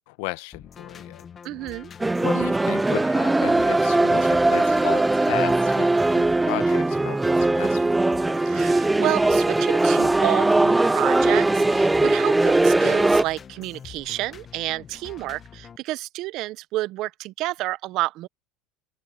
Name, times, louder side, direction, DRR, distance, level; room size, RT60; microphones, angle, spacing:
voice 1, 0.1-1.3 2.1-7.9, left 21 dB, 75° left, 1.0 m, -34 dB
sound 1, 0.5-15.8, left 7 dB, 25° left, 1.2 m, -44 dB
voice 2, 1.4-1.9 8.5-18.3, right 17 dB, 55° right, 0.7 m, -30 dB
sound 2, 2.0-13.2, right 2 dB, 10° right, 0.3 m, -20 dB
open air
supercardioid pair, 135°, 0 cm